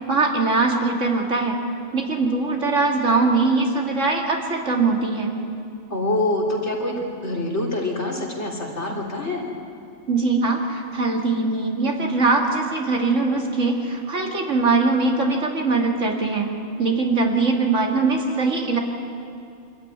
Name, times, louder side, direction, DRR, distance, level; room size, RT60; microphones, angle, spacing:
voice 1, 0.1-1.6 1.9-5.3 10.1-16.5 16.8-18.8, right 3 dB, 65° right, 1 dB, 2.6 m, -21 dB
voice 2, 5.9-9.4, left 1 dB, 55° left, -1 dB, 3.6 m, -25 dB
25.0 x 14.5 x 9.7 m, 2.5 s
omnidirectional pair, 1.4 m